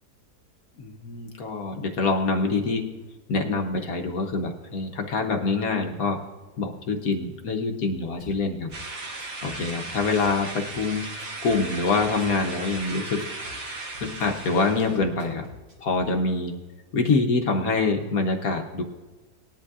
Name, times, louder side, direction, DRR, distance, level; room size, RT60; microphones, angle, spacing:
voice 1, 0.8-2.9 3.3-6.2 6.6-8.7 9.4-11.1 11.4-13.3 14.0-15.5 15.8-16.5 16.9-18.8, left 3 dB, 65° left, 3 dB, 1.3 m, -25 dB
Drum kit / Bass drum, 8.2-8.4 8.7-10.3 10.7-12.3 12.7-14.3 14.8-16.1, left 3 dB, 55° right, 3.6 m, -49 dB
sound 1, 8.7-15.0, right 2 dB, 85° right, 2.2 m, -36 dB
19.0 x 10.5 x 2.4 m, 1.2 s
omnidirectional pair, 1.7 m